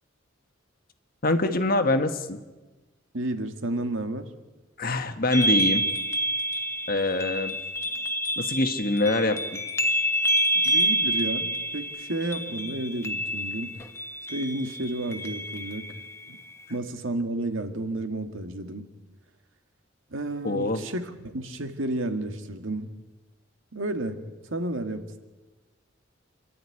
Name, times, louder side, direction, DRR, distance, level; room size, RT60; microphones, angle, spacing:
voice 1, 1.2-2.4 4.8-5.8 6.9-7.5 8.4-9.6 20.4-20.8, left 2 dB, 45° left, 8 dB, 1.5 m, -24 dB
voice 2, 3.1-4.3 10.6-13.8 14.3-15.9 16.3-16.4 16.7-18.9 20.1-22.9 23.7-25.0, right 1 dB, 85° right, 7 dB, 2.0 m, -31 dB
sound 1, 5.3-16.7, equal, 15° left, 1.2 m, -28 dB
28.0 x 12.0 x 9.8 m, 1.2 s
head